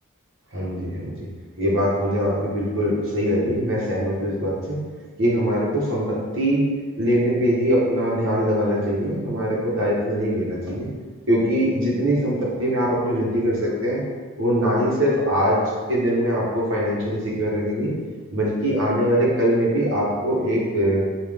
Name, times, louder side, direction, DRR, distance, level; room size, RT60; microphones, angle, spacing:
voice 1, 0.5-1.3 1.6-4.9 5.2-6.7 7.0-10.9 11.3-14.0 14.4-17.9 18.3-21.0, equal, 60° right, -5 dB, 1.2 m, -22 dB
5.7 x 2.6 x 3.4 m, 1.5 s
head